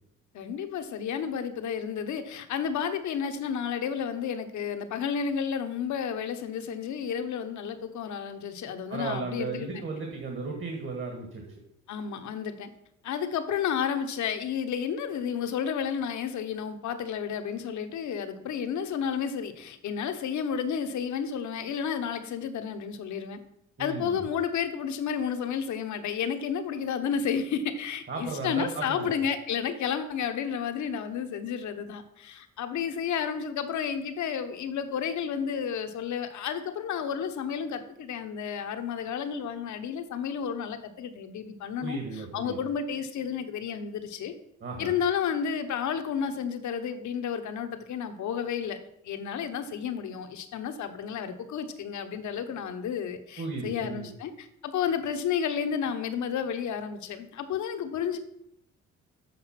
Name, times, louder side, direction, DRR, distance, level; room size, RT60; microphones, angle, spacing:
voice 1, 0.3-9.8 11.9-12.7 13.0-23.4 23.8-44.3 44.8-48.8 49.0-58.2, left 7 dB, 70° left, 8 dB, 1.0 m, -31 dB
voice 2, 8.9-11.4 23.8-24.2 28.1-29.1 41.8-42.6 44.6-44.9 53.4-54.1, right 3 dB, 40° right, 2 dB, 1.6 m, -35 dB
7.8 x 5.0 x 5.8 m, 0.77 s
cardioid pair, 90°, 30 cm